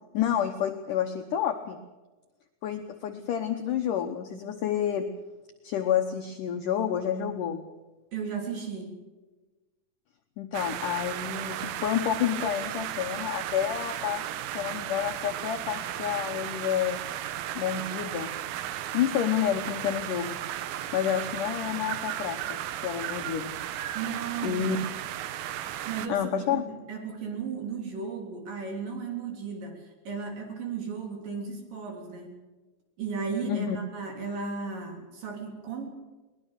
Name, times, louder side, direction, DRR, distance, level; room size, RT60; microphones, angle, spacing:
voice 1, 0.1-1.8 2.6-5.1 5.6-7.6 10.4-17.0 17.6-18.3 18.9-20.4 20.9-23.5 24.4-24.8 26.1-26.6 33.5-33.8, left 9 dB, 70° left, 5 dB, 2.0 m, -29 dB
voice 2, 8.1-9.0 23.9-24.7 25.8-32.4 33.0-35.9, right 5 dB, 55° right, 3 dB, 4.7 m, -35 dB
sound 1, 10.5-26.1, right 12 dB, 75° right, 2.4 m, -35 dB
21.5 x 20.0 x 6.6 m, 1.2 s
omnidirectional pair, 5.0 m